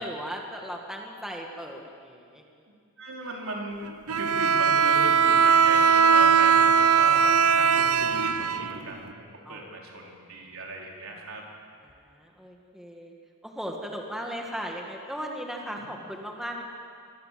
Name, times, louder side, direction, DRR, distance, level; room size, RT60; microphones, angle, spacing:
voice 1, 0.0-2.5 9.4-9.6 11.8-13.1 13.4-16.6, equal, ahead, 0 dB, 1.9 m, -37 dB
voice 2, 3.0-3.8 4.2-11.5, right 2 dB, 65° right, -1 dB, 4.6 m, -37 dB
Bowed string instrument, 4.1-9.1, right 6 dB, 90° right, 0.8 m, -20 dB
26.0 x 21.0 x 7.7 m, 2.3 s
head